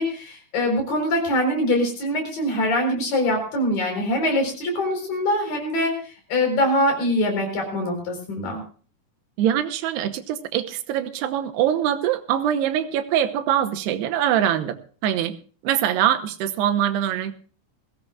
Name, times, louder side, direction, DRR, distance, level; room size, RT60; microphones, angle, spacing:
voice 1, 0.0-8.6, left 1 dB, 60° left, 2 dB, 6.1 m, -23 dB
voice 2, 9.4-15.4 15.6-17.4, right 10 dB, 90° right, 7 dB, 3.1 m, -23 dB
21.5 x 16.0 x 2.5 m, 0.40 s
omnidirectional pair, 4.7 m